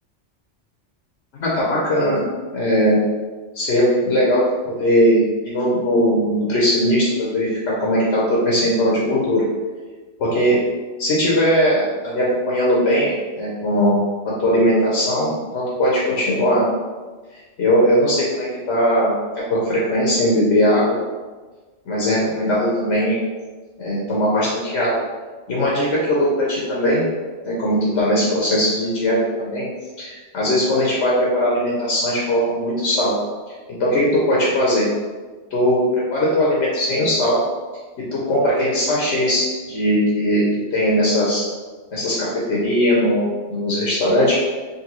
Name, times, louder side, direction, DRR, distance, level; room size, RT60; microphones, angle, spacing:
voice 1, 1.3-2.2 2.5-3.0 3.5-9.5 10.2-10.6 11.0-16.7 17.6-19.1 19.5-21.0 21.9-23.2 23.8-25.0 25.5-27.0 27.5-29.6 30.0-33.2 33.8-34.9 35.5-37.4 38.1-40.4 40.7-41.4 41.9-44.4, equal, 75° left, -5 dB, 1.1 m, -19 dB
3.9 x 3.1 x 3.0 m, 1.3 s
omnidirectional pair, 1.2 m